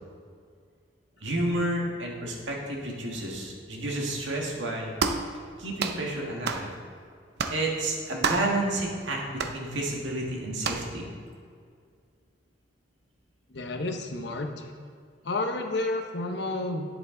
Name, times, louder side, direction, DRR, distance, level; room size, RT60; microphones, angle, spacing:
voice 1, 1.2-4.9 5.6-6.7 7.5-9.2 9.5-11.1, right 1 dB, 85° right, -1 dB, 1.9 m, -30 dB
sound 1, 5.0-5.3 5.8-6.0 6.5-6.7 7.4-7.6 8.2-8.5 9.4-9.6 10.6-10.9, right 4 dB, 60° right, 0.7 m, -28 dB
voice 2, 13.5-14.7 15.2-16.9, left 2 dB, 65° left, 4 dB, 1.0 m, -30 dB
10.0 x 8.1 x 3.9 m, 2.2 s
head